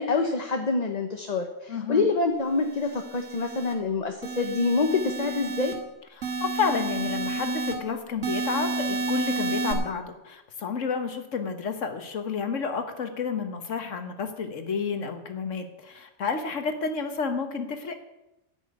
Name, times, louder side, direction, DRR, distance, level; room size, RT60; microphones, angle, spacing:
voice 1, 0.0-5.7, left 3 dB, 35° left, 4 dB, 1.0 m, -26 dB
voice 2, 1.7-2.0 6.2-18.0, left 5 dB, 75° left, 7 dB, 1.6 m, -30 dB
sound 1, 2.6-3.7 4.2-5.7 6.2-7.7 8.2-9.7, right 3 dB, 80° right, 2.2 m, -31 dB
13.0 x 6.1 x 9.2 m, 0.93 s
omnidirectional pair, 1.3 m